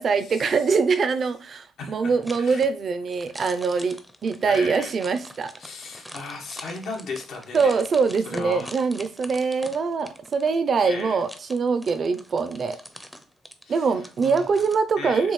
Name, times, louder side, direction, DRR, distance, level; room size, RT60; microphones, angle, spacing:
voice 1, 0.0-5.5 7.5-12.8 13.7-15.3, right 5 dB, 50° right, 10 dB, 0.6 m, -23 dB
voice 2, 1.8-2.7 3.7-3.9 4.5-4.9 5.6-7.7 8.3-8.7 10.8-11.2 13.6-13.9 14.2-14.4 15.0-15.3, left 4 dB, 75° left, 0 dB, 1.4 m, -36 dB
sound 1, 2.2-14.8, equal, 5° left, 0.6 m, -44 dB
7.0 x 2.4 x 3.2 m, 0.38 s
cardioid pair, 90°, 0 cm